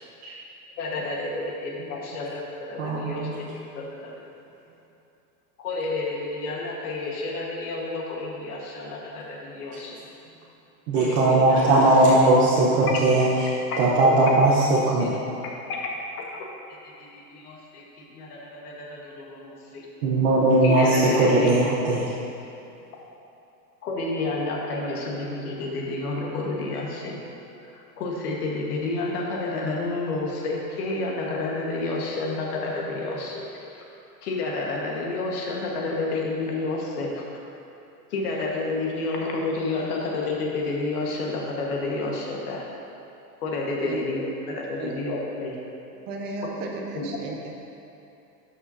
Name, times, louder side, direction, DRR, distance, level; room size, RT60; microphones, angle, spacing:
voice 1, 0.8-4.2 5.6-10.0 10.9-12.3 13.7-13.8 15.0-15.2 15.7-15.8 16.7-19.9 20.6-21.5 23.8-27.2 27.7-33.8 34.2-37.2 38.1-42.7 43.4-45.6 46.9-47.1, left 2 dB, 70° left, -2 dB, 1.6 m, -30 dB
voice 2, 2.8-3.3 10.9-13.2 13.8-15.1 20.0-22.1, right 2 dB, 50° right, -7 dB, 1.1 m, -19 dB
voice 3, 46.1-47.6, right 3 dB, 20° right, 0 dB, 0.6 m, -34 dB
12.5 x 5.9 x 2.8 m, 2.8 s
supercardioid pair, 160°, 47 cm